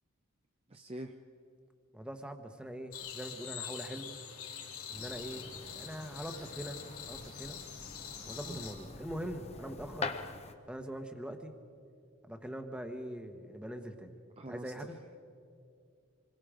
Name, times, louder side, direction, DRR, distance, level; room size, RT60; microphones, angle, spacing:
voice 1, 0.7-1.1 8.4-8.6 14.4-14.9, right 1 dB, 25° right, 5 dB, 0.7 m, -44 dB
voice 2, 1.9-4.2 4.9-5.5 5.7-6.8 7.1-7.6 8.3-10.1 10.7-11.5 12.2-14.1 14.5-15.0, equal, 5° right, 6 dB, 1.2 m, -42 dB
sound 1, 2.9-8.7, left 8 dB, 85° left, 3.4 m, -45 dB
sound 2, 4.9-10.5, left 3 dB, 30° left, 0.8 m, -45 dB
26.5 x 22.0 x 5.1 m, 2.5 s
head